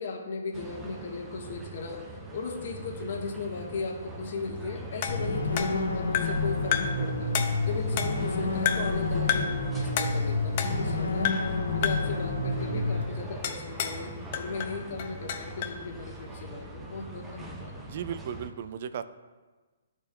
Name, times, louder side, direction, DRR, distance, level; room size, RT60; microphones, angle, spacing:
voice 1, 0.0-2.0 2.3-7.3 7.6-11.3 11.7-17.8, left 3 dB, 60° left, 0 dB, 1.2 m, -36 dB
sound 1, 0.5-18.5, right 1 dB, 10° right, 0.6 m, -43 dB
sound 2, 5.0-6.5 6.7-7.1 7.3-8.3 8.7-9.0 9.3-9.6 10.0-11.0 11.2-11.6 11.8-12.2 13.4-14.0 14.3-15.8, left 8 dB, 40° left, 0.5 m, -31 dB
sound 3, 5.1-13.0, left 2 dB, 85° left, 1.6 m, -29 dB
voice 2, 17.9-19.0, right 8 dB, 50° right, 12 dB, 0.4 m, -35 dB
12.0 x 4.4 x 2.2 m, 1.3 s
hypercardioid pair, 150°, 0 cm